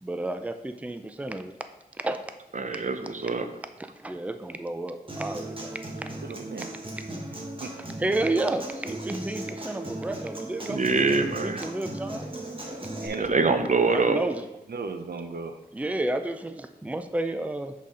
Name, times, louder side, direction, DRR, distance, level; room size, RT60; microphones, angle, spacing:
voice 1, 0.0-1.5 2.0-2.2 2.7-2.9 4.0-6.1 8.0-10.8 11.4-12.2 13.8-14.4 15.7-17.7, right 2 dB, 10° right, 8 dB, 0.4 m, -31 dB
voice 2, 2.5-3.5 10.7-11.6 13.2-14.2, right 3 dB, 50° right, 7 dB, 0.6 m, -24 dB
Human voice / Acoustic guitar, 5.1-13.1, right 1 dB, 35° right, 1.3 m, -37 dB
voice 3, 6.2-6.7 7.6-7.7 13.0-13.5 14.7-15.6, right 4 dB, 90° right, 7 dB, 0.6 m, -35 dB
6.2 x 4.2 x 5.5 m, 0.92 s
wide cardioid pair, 75°, 16 cm